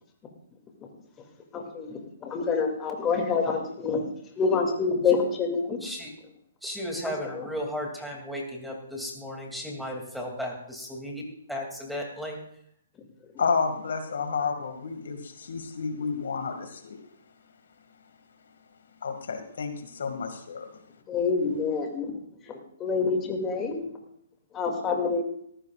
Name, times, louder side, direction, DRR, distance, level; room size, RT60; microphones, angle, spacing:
voice 1, 1.5-4.1 4.4-5.8 7.0-7.4 21.1-22.2 22.4-23.8 24.5-25.2, left 5 dB, 20° left, 2 dB, 2.4 m, -27 dB
voice 2, 6.6-11.2 11.5-12.4, equal, ahead, -1 dB, 2.7 m, -35 dB
voice 3, 13.4-17.0 19.0-20.8, left 5 dB, 75° left, 6 dB, 2.1 m, -31 dB
17.5 x 15.0 x 2.5 m, 0.69 s
hypercardioid pair, 145°, 0 cm